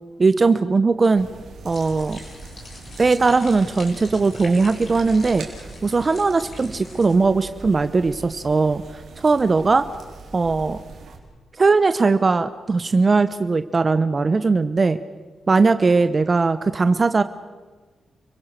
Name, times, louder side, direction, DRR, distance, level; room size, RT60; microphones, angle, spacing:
voice 1, 0.2-1.3 1.6-2.2 3.0-5.5 5.8-8.8 9.2-9.9 10.3-10.8 11.6-15.0 15.5-17.2, right 4 dB, 40° right, 12 dB, 0.9 m, -19 dB
sound 1, 1.2-11.2, right 3 dB, 70° right, 3.6 m, -41 dB
sound 2, 1.7-7.1, left 2 dB, 60° left, 6.4 m, -42 dB
30.0 x 17.0 x 6.7 m, 1.3 s
supercardioid pair, 50°, 0 cm